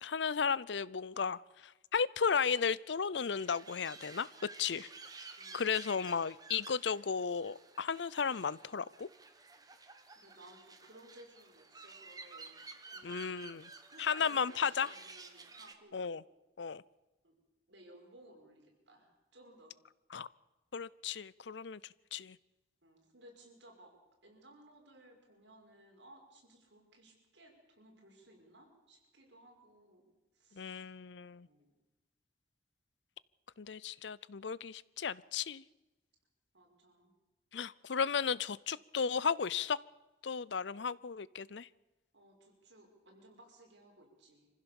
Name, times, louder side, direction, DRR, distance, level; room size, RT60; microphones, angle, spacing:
voice 1, 0.0-4.3 4.6-4.9 5.5-9.1 13.0-13.7 14.0-14.9 15.9-16.2 16.6-16.8 20.1-20.3 20.7-21.8 22.1-22.4 30.6-31.5 33.6-35.6 37.5-39.8 40.2-41.7, left 6 dB, 75° left, 21 dB, 0.6 m, -34 dB
sound 1, 3.4-15.7, right 4 dB, 20° right, 1.5 m, -53 dB
voice 2, 5.4-5.9 10.1-13.5 13.9-16.1 17.2-17.3 17.7-19.8 22.8-23.9 24.2-30.9 31.4-31.7 36.5-37.1 42.1-44.5, right 1 dB, 75° right, 0 dB, 6.0 m, -59 dB
25.0 x 15.5 x 7.1 m, 1.1 s
head